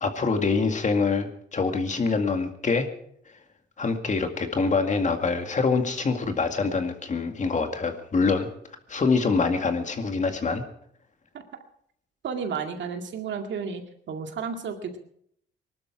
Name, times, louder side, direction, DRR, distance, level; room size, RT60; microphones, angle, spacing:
voice 1, 0.0-2.9 3.8-8.5 8.9-10.6, left 4 dB, 40° left, 6 dB, 2.1 m, -25 dB
voice 2, 12.2-13.8 14.1-15.0, right 6 dB, 65° right, 5 dB, 2.2 m, -32 dB
20.0 x 12.5 x 4.8 m, 0.68 s
cardioid pair, 90°, 20 cm